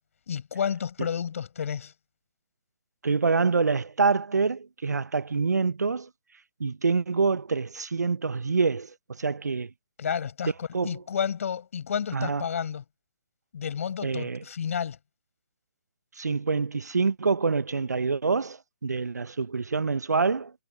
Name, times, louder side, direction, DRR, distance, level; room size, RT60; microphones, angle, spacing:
voice 1, 0.3-1.9 10.0-12.8 13.5-15.0, left 7 dB, 50° left, 5.6 m, -31 dB
voice 2, 3.0-6.1 6.6-9.7 10.7-11.0 12.1-12.4 14.0-14.4 16.2-20.5, right 4 dB, 75° right, 1.1 m, -26 dB
figure-of-eight pair, 140°, 9 cm